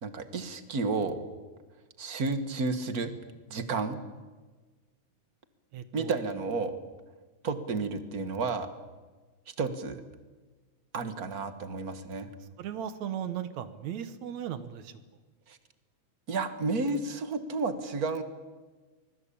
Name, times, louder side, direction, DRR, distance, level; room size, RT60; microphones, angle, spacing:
voice 1, 0.0-1.2 2.0-3.1 3.5-4.0 5.9-6.7 7.4-8.7 9.6-10.0 10.9-12.3 15.5-15.6 16.3-18.2, right 3 dB, 35° right, 10 dB, 1.7 m, -31 dB
voice 2, 5.7-6.1 12.6-14.9, right 9 dB, 70° right, 12 dB, 2.5 m, -37 dB
24.5 x 21.5 x 8.6 m, 1.3 s
omnidirectional pair, 3.4 m